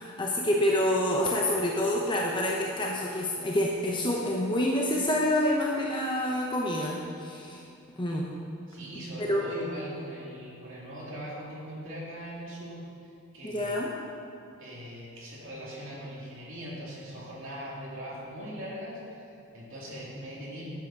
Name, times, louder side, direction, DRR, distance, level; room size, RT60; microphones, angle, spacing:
voice 1, 0.0-7.6 8.0-8.3 9.2-9.4 13.4-13.9, left 1 dB, 20° left, -2 dB, 0.7 m, -27 dB
voice 2, 8.7-12.8 13.3-13.7 14.6-20.6, equal, 60° right, -6 dB, 3.1 m, -40 dB
10.5 x 7.7 x 6.0 m, 2.5 s
head